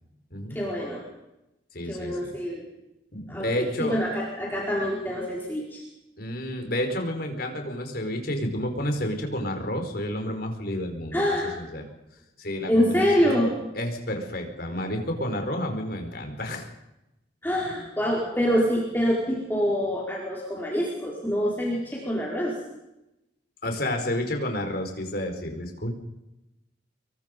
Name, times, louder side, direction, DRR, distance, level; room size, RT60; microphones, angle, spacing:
voice 1, 0.5-1.0 1.8-2.7 3.3-5.8 11.1-11.6 12.7-13.5 17.4-22.6, equal, 10° left, -4 dB, 4.9 m, -26 dB
voice 2, 1.7-2.3 3.1-3.9 6.2-11.2 11.6-11.8 12.4-13.4 13.7-16.7 23.6-25.9, left 1 dB, 55° left, 4 dB, 5.0 m, -30 dB
26.5 x 23.0 x 5.4 m, 0.90 s
head